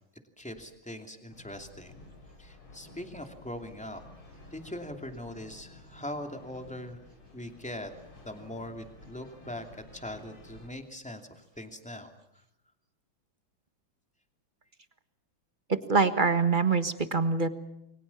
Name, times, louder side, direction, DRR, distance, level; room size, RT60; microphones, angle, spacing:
voice 1, 0.4-1.9 2.4-4.0 4.5-7.0 7.3-7.9 8.2-9.6 9.9-12.1, left 1 dB, 5° left, 5 dB, 2.6 m, -41 dB
sound 1, 1.3-10.7, left 2 dB, 90° left, 5.9 m, -52 dB
voice 2, 15.9-17.5, right 4 dB, 25° right, 10 dB, 1.4 m, -24 dB
29.5 x 22.5 x 7.2 m, 0.79 s
omnidirectional pair, 2.2 m